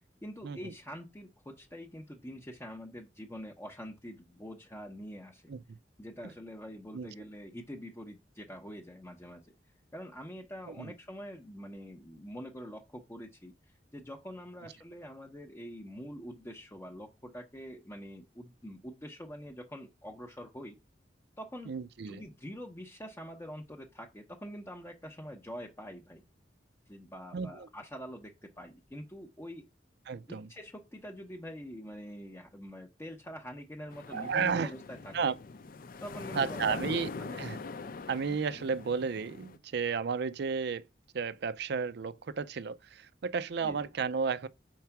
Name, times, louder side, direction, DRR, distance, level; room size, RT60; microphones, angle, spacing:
voice 1, 0.2-5.4 6.0-9.5 9.9-20.8 21.4-21.7 22.1-26.2 26.9-29.6 30.3-35.1 36.0-37.0 37.3-37.5 43.6-43.9, equal, 15° left, 0.7 m, -45 dB
voice 2, 21.7-22.2 27.3-27.7 30.1-30.5 34.1-34.7 35.1-35.3 36.3-37.1 37.4-37.6 38.1-40.9 41.1-44.5, right 5 dB, 65° right, 0.4 m, -33 dB
sound 1, 33.9-39.6, left 4 dB, 50° left, 0.5 m, -43 dB
4.6 x 4.4 x 5.7 m
head